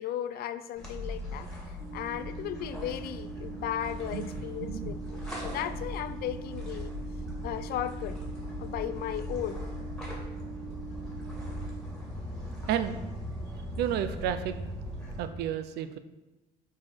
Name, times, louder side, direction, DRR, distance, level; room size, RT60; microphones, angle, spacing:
voice 1, 0.0-1.5 1.9-6.9 7.4-8.2 8.6-9.6, left 11 dB, 65° left, 13 dB, 0.4 m, -36 dB
sound 1, 0.8-15.3, left 1 dB, 5° left, 2.3 m, -39 dB
sound 2, 1.8-11.8, right 7 dB, 35° right, 1.2 m, -44 dB
voice 2, 4.6-4.9 12.7-13.0 13.8-14.6 15.2-16.0, right 10 dB, 75° right, 11 dB, 0.5 m, -31 dB
5.9 x 4.7 x 4.4 m, 1.1 s
cardioid pair, 110°, 17 cm